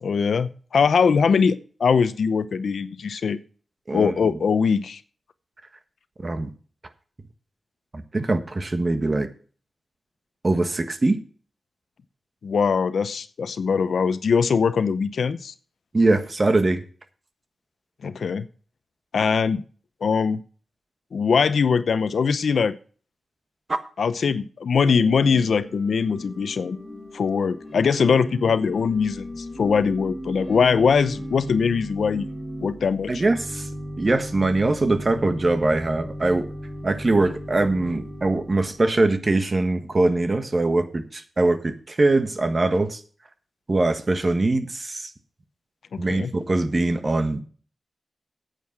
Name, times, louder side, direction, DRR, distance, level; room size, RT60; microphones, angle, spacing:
voice 1, 0.0-3.4 3.9-5.0 12.4-15.5 18.0-18.5 19.1-19.6 20.0-20.4 21.1-22.7 24.0-26.8 27.1-32.3 32.6-33.2 45.9-46.3, left 5 dB, 80° left, 0.7 m, -22 dB
voice 2, 7.9-9.3 10.4-11.2 15.9-16.8 33.1-33.7 34.0-36.5 36.8-43.0 43.7-45.1 46.0-47.4, right 2 dB, 35° right, 1.4 m, -22 dB
Organ / Church bell, 24.8-39.0, equal, 10° left, 4.5 m, -36 dB
9.4 x 8.3 x 6.0 m
wide cardioid pair, 80°, 0 cm